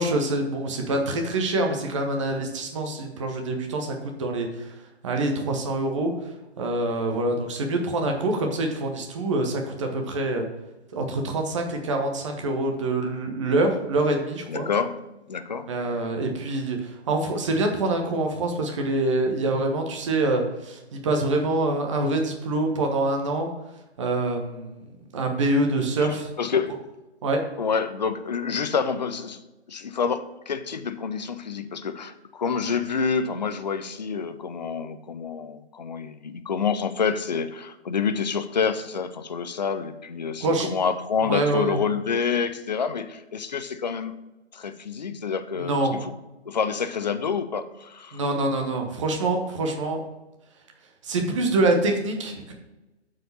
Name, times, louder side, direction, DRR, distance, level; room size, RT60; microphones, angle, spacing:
voice 1, 0.0-4.7 5.0-6.1 6.6-10.5 10.9-14.7 15.7-23.5 24.0-24.8 25.1-26.3 27.2-27.4 40.4-40.7 41.2-41.8 45.6-45.9 48.1-50.0 51.0-52.5, right 2 dB, 25° right, 3 dB, 1.1 m, -25 dB
voice 2, 14.5-15.0 15.3-15.7 26.0-26.8 27.6-29.4 29.7-44.1 44.5-46.1 46.5-48.2, left 6 dB, 40° left, 11 dB, 0.6 m, -28 dB
7.8 x 5.0 x 5.6 m, 1.0 s
figure-of-eight pair, 145°, 34 cm